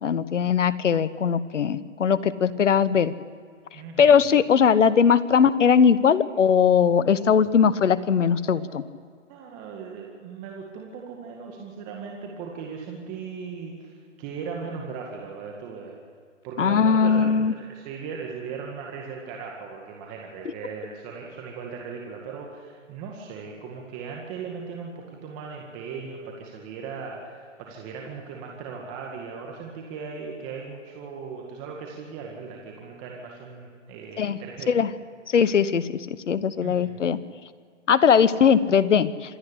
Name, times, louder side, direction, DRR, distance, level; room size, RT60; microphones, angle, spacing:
voice 1, 0.0-3.1 4.0-8.8 16.6-17.5 20.4-20.5 34.2-34.4 34.7-34.9 35.3-37.2 37.9-39.4, left 7 dB, 70° left, 15 dB, 1.2 m, -20 dB
voice 2, 3.7-4.1 8.5-8.7 9.3-16.0 16.4-24.9 25.2-34.7 36.6-37.0, right 5 dB, 20° right, 0 dB, 2.1 m, -38 dB
26.0 x 10.5 x 9.9 m, 2.1 s
hypercardioid pair, 150°, 38 cm